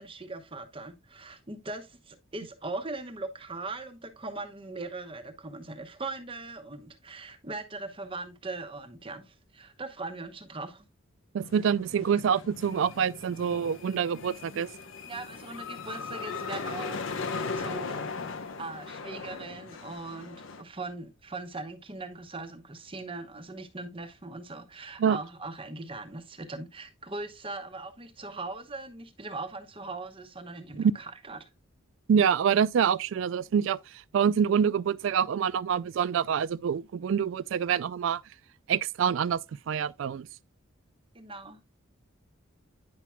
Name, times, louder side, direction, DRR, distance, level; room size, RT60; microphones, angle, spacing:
voice 1, 0.0-10.9 15.1-17.2 17.5-18.0 18.6-31.5 41.1-41.6, right 3 dB, 25° right, 0.9 m, -40 dB
voice 2, 11.3-14.7 25.0-25.2 30.8-30.9 32.1-38.2 38.7-39.4 39.7-40.3, right 7 dB, 70° right, 0.3 m, -26 dB
sound 1, 11.4-20.6, left 4 dB, 75° left, 0.8 m, -38 dB
9.6 x 5.8 x 2.2 m
head